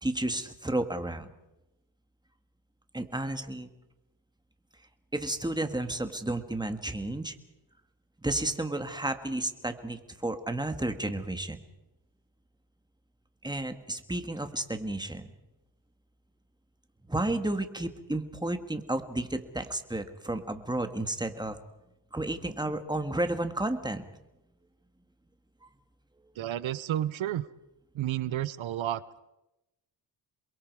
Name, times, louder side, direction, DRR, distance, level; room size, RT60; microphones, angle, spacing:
voice 1, 0.0-1.3 2.9-3.7 5.1-7.3 8.2-11.6 13.4-15.3 17.1-21.6 22.1-24.0, right 1 dB, 10° right, 7 dB, 2.0 m, -32 dB
voice 2, 26.4-27.5 27.9-29.2, right 12 dB, 85° right, 17 dB, 0.8 m, -31 dB
28.5 x 22.0 x 4.8 m, 0.93 s
cardioid pair, 85°, 46 cm